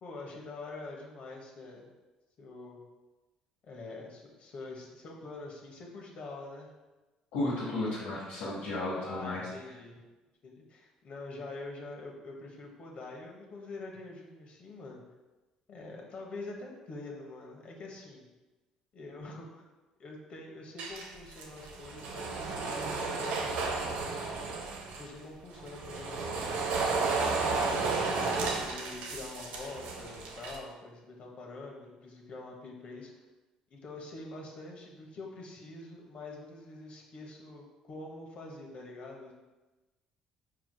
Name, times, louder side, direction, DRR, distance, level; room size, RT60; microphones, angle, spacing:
voice 1, 0.0-1.9 2.4-2.8 3.6-6.7 9.0-10.0 10.4-15.0 15.7-18.3 18.9-19.7 20.0-23.8 25.0-27.2 27.5-33.1 33.7-39.3, left 2 dB, 55° left, 0 dB, 1.1 m, -45 dB
voice 2, 7.3-9.5, left 2 dB, 80° left, -9 dB, 1.3 m, -33 dB
sound 1, 20.8-25.1 25.6-30.6, right 4 dB, 75° right, 0.7 m, -33 dB
4.8 x 4.8 x 2.2 m, 1.2 s
supercardioid pair, 70°, 3 cm